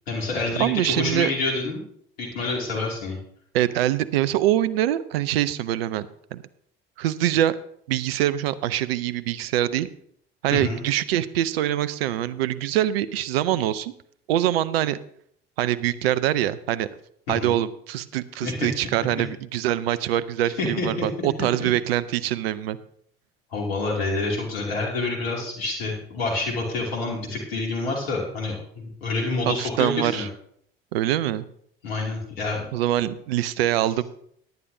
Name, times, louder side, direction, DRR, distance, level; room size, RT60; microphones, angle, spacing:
voice 1, 0.1-1.8 2.2-3.2 10.5-10.8 17.3-17.5 18.4-18.7 20.6-21.3 23.5-30.3 31.8-32.6, left 3 dB, 85° left, -1 dB, 2.6 m, -27 dB
voice 2, 0.6-1.3 3.5-6.1 6.3-6.4 7.0-7.6 7.9-9.9 10.4-13.9 14.3-15.0 15.6-16.9 17.3-22.8 29.5-30.3 30.9-31.4 32.7-34.0, right 12 dB, 80° right, 16 dB, 0.6 m, -24 dB
17.5 x 10.0 x 2.7 m, 0.66 s
hypercardioid pair, 60°, 30 cm